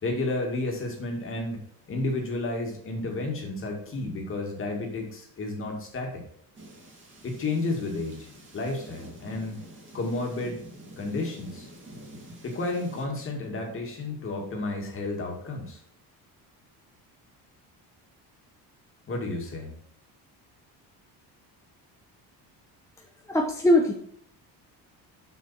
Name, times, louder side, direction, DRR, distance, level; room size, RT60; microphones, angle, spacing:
voice 1, 0.0-1.6 1.9-6.2 7.2-9.6 9.9-10.6 11.0-11.7 12.4-15.8 19.1-19.8, left 2 dB, 35° left, 1 dB, 2.3 m, -31 dB
sound 1, 6.5-13.0, right 1 dB, 30° right, 2.6 m, -47 dB
voice 2, 23.3-23.9, left 1 dB, 5° left, 1 dB, 0.7 m, -21 dB
7.1 x 6.1 x 4.3 m, 0.65 s
cardioid pair, 150°, 39 cm